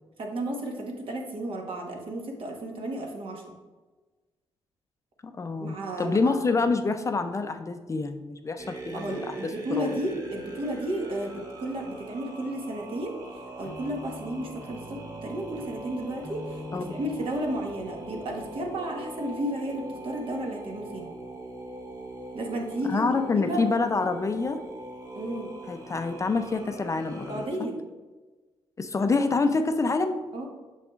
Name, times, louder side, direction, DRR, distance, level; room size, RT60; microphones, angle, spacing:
voice 1, 0.2-3.5 5.6-6.3 8.9-13.1 13.6-21.1 22.3-23.6 25.1-25.5 27.3-27.8 30.3-30.5, right 1 dB, 60° right, 1 dB, 1.3 m, -33 dB
voice 2, 5.3-10.0 16.7-17.0 22.9-24.6 25.7-27.7 28.8-30.2, left 3 dB, 30° left, 7 dB, 0.5 m, -27 dB
sound 1, 8.6-27.5, right 1 dB, 35° right, 1.1 m, -42 dB
sound 2, 13.6-18.8, left 1 dB, 5° left, 0.8 m, -45 dB
6.6 x 6.1 x 2.4 m, 1.2 s
cardioid pair, 95°, 10 cm